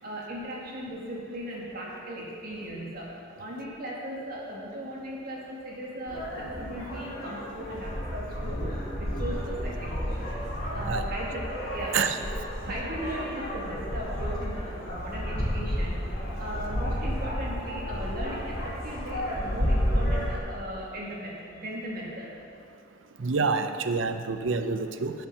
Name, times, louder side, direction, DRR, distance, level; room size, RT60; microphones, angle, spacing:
voice 1, 0.0-3.1 3.4-10.2 10.5-11.4 11.7-12.2 12.6-16.0 16.4-22.3, right 1 dB, 50° right, -4 dB, 2.4 m, -37 dB
sound 1, 6.1-20.4, equal, 50° left, 2.8 m, -31 dB
voice 2, 23.2-25.1, right 4 dB, 70° right, 9 dB, 0.6 m, -27 dB
11.5 x 7.1 x 5.8 m, 2.3 s
head